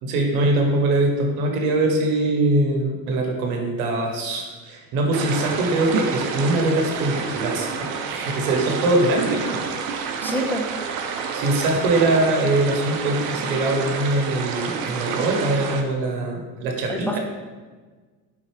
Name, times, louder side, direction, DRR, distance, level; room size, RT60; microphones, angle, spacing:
voice 1, 0.0-9.6 11.3-17.2, right 2 dB, 80° right, 2 dB, 1.0 m, -22 dB
sound 1, 5.1-15.8, right 6 dB, 55° right, 0.6 m, -29 dB
voice 2, 10.2-10.7 16.9-17.2, equal, 5° left, 1 dB, 0.3 m, -27 dB
4.3 x 3.8 x 3.2 m, 1.4 s
hypercardioid pair, 80°, 41 cm